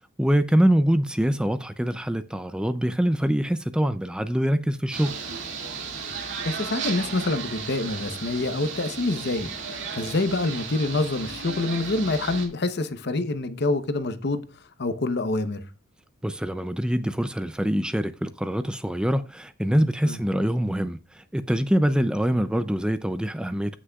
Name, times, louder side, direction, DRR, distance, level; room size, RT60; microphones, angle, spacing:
voice 1, 0.2-5.1 16.2-23.8, equal, 5° right, 0.3 m, -24 dB
sound 1, 4.9-12.5, right 5 dB, 60° right, 2.2 m, -34 dB
voice 2, 6.4-9.5 9.9-14.4 14.8-15.6 20.1-20.2, left 2 dB, 50° left, 0.8 m, -26 dB
15.5 x 6.3 x 2.3 m
head